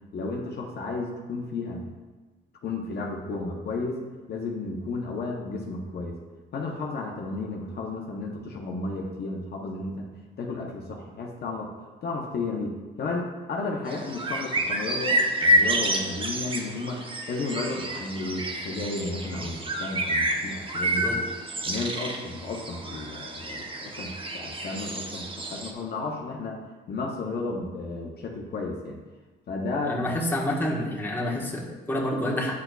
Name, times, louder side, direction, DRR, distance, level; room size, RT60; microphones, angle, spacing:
voice 1, 0.1-1.8 2.6-4.0 4.3-6.2 6.5-10.1 10.4-11.7 12.0-17.0 17.3-21.2 21.6-26.6 26.9-29.0 29.5-30.1, left 3 dB, 55° left, 0 dB, 0.8 m, -33 dB
sound 1, 13.9-25.7, right 1 dB, 25° right, 0.7 m, -29 dB
voice 2, 29.8-32.5, left 1 dB, 10° left, -3 dB, 1.3 m, -28 dB
9.4 x 4.4 x 2.3 m, 1.3 s
cardioid pair, 90°, 20 cm